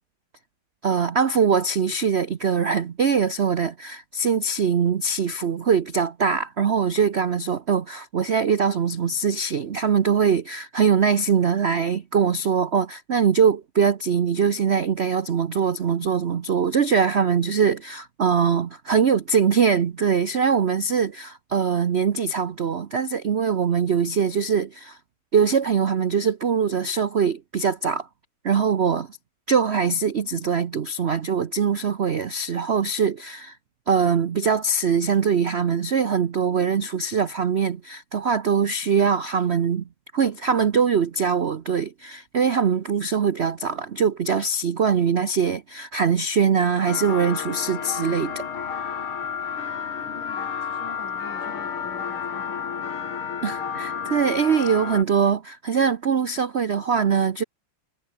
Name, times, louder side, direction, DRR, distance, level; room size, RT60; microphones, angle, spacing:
voice 1, 0.8-25.0 25.3-28.1 28.4-29.2 29.5-33.6 33.9-39.8 40.1-48.4 53.4-57.4, right 6 dB, 80° right, 0.5 m, -22 dB
sound 1, 46.9-55.0, left 7 dB, 80° left, 3.1 m, -31 dB
voice 2, 50.0-53.5, left 3 dB, 60° left, 5.1 m, -47 dB
omnidirectional pair, 2.3 m